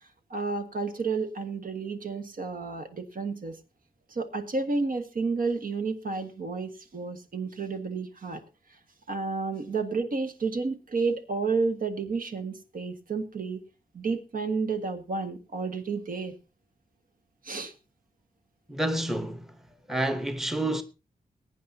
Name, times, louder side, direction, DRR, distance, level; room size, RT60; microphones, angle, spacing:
voice 1, 0.3-3.6 4.1-8.4 9.1-13.6 13.9-16.3 17.4-17.7, right 4 dB, 60° right, 1.7 m, -31 dB
voice 2, 18.7-19.6 19.9-20.8, right 1 dB, ahead, 0.9 m, -29 dB
22.0 x 9.5 x 2.8 m
wide cardioid pair, 120°, 17 cm